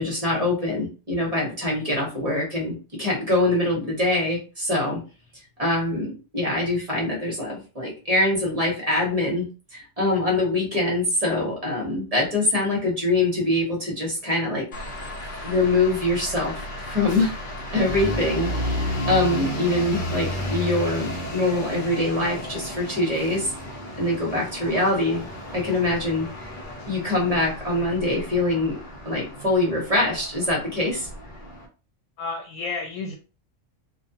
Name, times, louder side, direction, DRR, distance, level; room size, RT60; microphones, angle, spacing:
voice 1, 0.0-5.0 5.6-14.6 15.4-16.5 16.9-17.3 17.7-23.5 24.0-25.2 25.5-26.3 26.9-28.8 29.0-31.1, left 2 dB, 35° right, -2 dB, 0.8 m, -24 dB
sound 1, 14.7-31.7, left 1 dB, 50° left, 0.8 m, -33 dB
voice 2, 32.2-33.2, left 4 dB, 90° left, 3 dB, 1.0 m, -31 dB
2.3 x 2.2 x 2.7 m, 0.34 s
omnidirectional pair, 1.3 m